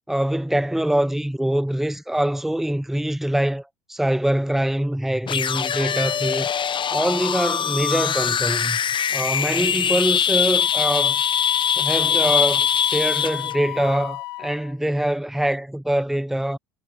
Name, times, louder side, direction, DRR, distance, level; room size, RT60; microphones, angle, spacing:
voice 1, 0.1-6.5 6.9-8.8 9.1-11.2 11.7-16.6, right 1 dB, ahead, 1.0 m, -24 dB
sound 1, 5.3-13.5, left 8 dB, 40° left, 2.1 m, -22 dB
Wind instrument woodwind instrument, 10.6-14.7, left 19 dB, 80° left, 1.2 m, -33 dB
hypercardioid pair, 75°, 13 cm